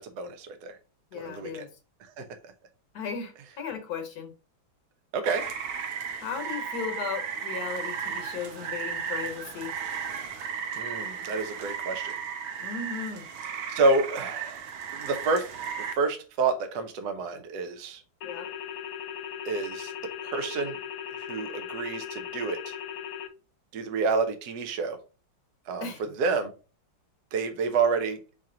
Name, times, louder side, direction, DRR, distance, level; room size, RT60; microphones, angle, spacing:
voice 1, 0.0-0.8 1.1-1.6 2.2-2.3 5.1-5.4 10.8-12.1 13.7-15.5 15.8-18.0 19.4-19.9 20.2-20.8 21.1-22.7 23.7-25.0 25.7-26.5 27.3-28.2, right 4 dB, 65° right, 8 dB, 1.2 m, -29 dB
voice 2, 1.1-1.7 2.9-4.3 6.2-9.7 12.6-13.2 18.2-18.5 25.8-26.0, left 6 dB, 55° left, 4 dB, 1.4 m, -36 dB
Rain, 5.3-15.9, right 7 dB, 90° right, 1.6 m, -35 dB
sound 1, 18.2-23.3, left 9 dB, 75° left, 0.8 m, -38 dB
5.0 x 2.9 x 3.7 m, 0.34 s
omnidirectional pair, 2.2 m